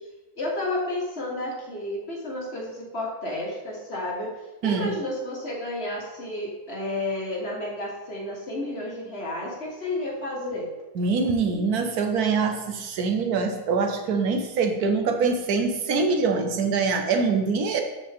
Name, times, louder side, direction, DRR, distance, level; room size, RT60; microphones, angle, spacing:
voice 1, 0.4-4.3 4.6-10.7, left 1 dB, 40° left, -2 dB, 2.0 m, -31 dB
voice 2, 11.0-17.8, right 4 dB, 80° right, 5 dB, 1.4 m, -24 dB
13.0 x 5.1 x 3.6 m, 1.1 s
omnidirectional pair, 1.6 m